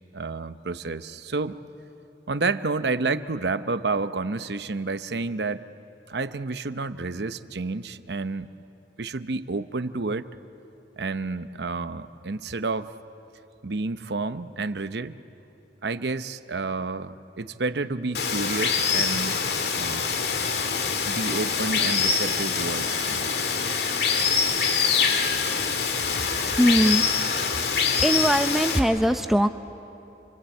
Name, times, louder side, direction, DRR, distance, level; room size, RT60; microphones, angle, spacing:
voice 1, 0.1-1.6 2.3-5.6 6.1-8.5 9.0-10.3 11.0-12.9 13.6-15.2 15.8-19.4 19.7-20.0 21.1-23.4, right 3 dB, 80° right, 12 dB, 0.8 m, -30 dB
Water, 18.1-28.8, left 5 dB, 70° left, 2.0 m, -25 dB
voice 2, 26.5-27.0 27.4-27.6 28.0-29.5, equal, ahead, 8 dB, 0.7 m, -21 dB
28.5 x 24.0 x 8.4 m, 3.0 s
head